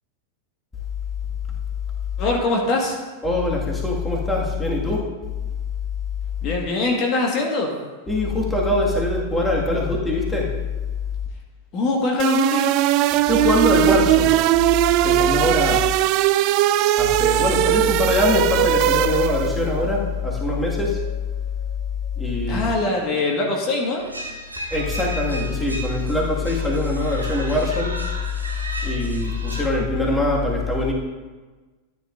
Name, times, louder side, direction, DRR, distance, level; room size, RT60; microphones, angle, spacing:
voice 1, 2.2-3.0 6.4-7.7 11.7-12.7 22.5-24.0, left 3 dB, 35° left, 0 dB, 1.6 m, -22 dB
voice 2, 3.2-5.0 8.1-10.5 13.3-14.3 15.0-15.9 16.9-21.0 22.2-22.7 24.7-28.0 28.8-30.9, left 2 dB, 10° left, -3 dB, 1.9 m, -22 dB
sound 1, 12.2-19.6, right 15 dB, 40° right, 0.3 m, -19 dB
sound 2, 18.5-22.6, left 2 dB, 80° left, 2.5 m, -33 dB
sound 3, 24.0-29.7, right 1 dB, 85° right, 1.5 m, -34 dB
13.5 x 9.3 x 2.6 m, 1.3 s
figure-of-eight pair, 90°, 0 cm